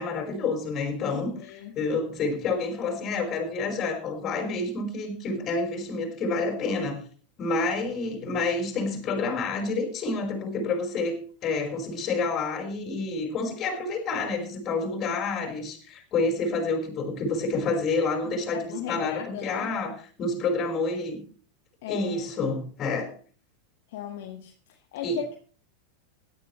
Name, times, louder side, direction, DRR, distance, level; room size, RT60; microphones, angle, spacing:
voice 1, 0.0-7.0 7.4-21.2 21.9-23.1 25.0-25.2, left 3 dB, 35° left, 4 dB, 5.2 m, -29 dB
voice 2, 1.1-1.7 18.2-19.7 21.8-22.2 23.9-25.4, left 9 dB, 60° left, 2 dB, 1.7 m, -37 dB
17.5 x 12.0 x 3.2 m, 0.40 s
figure-of-eight pair, 90°, 0 cm